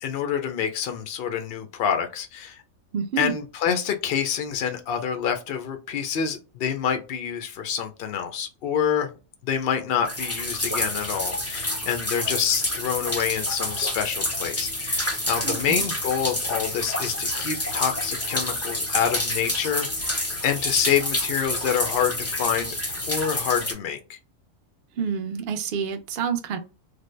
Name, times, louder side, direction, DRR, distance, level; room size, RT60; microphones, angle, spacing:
voice 1, 0.0-2.6 3.2-9.1 9.4-22.7 23.1-24.2, left 8 dB, 70° left, 0.5 m, -27 dB
voice 2, 2.9-3.3 15.4-15.8 25.0-26.6, right 7 dB, 65° right, 0.5 m, -28 dB
sound 1, 10.1-23.7, left 1 dB, 15° left, 0.5 m, -28 dB
3.3 x 2.1 x 3.1 m
omnidirectional pair, 1.5 m